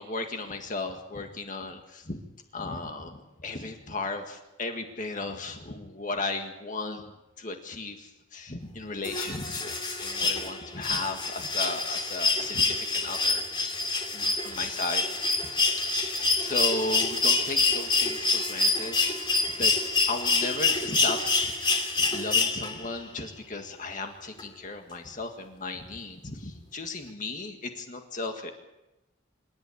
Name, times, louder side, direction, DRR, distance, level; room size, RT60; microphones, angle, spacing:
voice 1, 0.0-2.2 2.5-15.0 15.8-19.3 19.6-19.7 20.1-28.5, left 3 dB, 40° left, 4 dB, 1.8 m, -36 dB
sound 1, 9.0-23.0 24.4-24.5, left 3 dB, 25° left, 2.8 m, -27 dB
26.5 x 12.0 x 9.8 m, 1.0 s
head